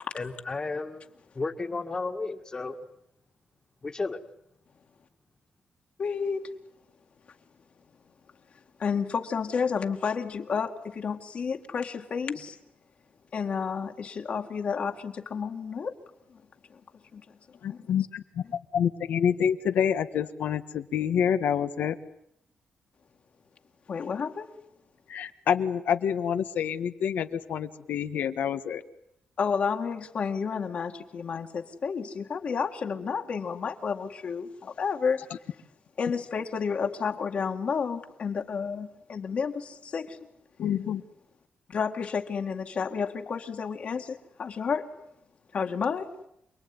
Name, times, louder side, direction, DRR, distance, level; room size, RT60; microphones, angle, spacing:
voice 1, 0.1-1.0 1.4-2.8 3.8-4.2, left 3 dB, 25° left, 1.8 m, -33 dB
voice 2, 6.0-6.5 8.8-12.6 13.3-15.9 16.3-16.4 17.1-17.2 17.7-17.8 23.9-24.5 29.4-35.2 36.0-40.2 41.7-44.9 45.5-46.1, left 6 dB, 50° left, 2.1 m, -31 dB
voice 3, 17.6-22.0 25.1-28.8 40.6-41.0, left 8 dB, 90° left, 1.5 m, -27 dB
28.0 x 21.0 x 9.7 m
wide cardioid pair, 155°, 3 cm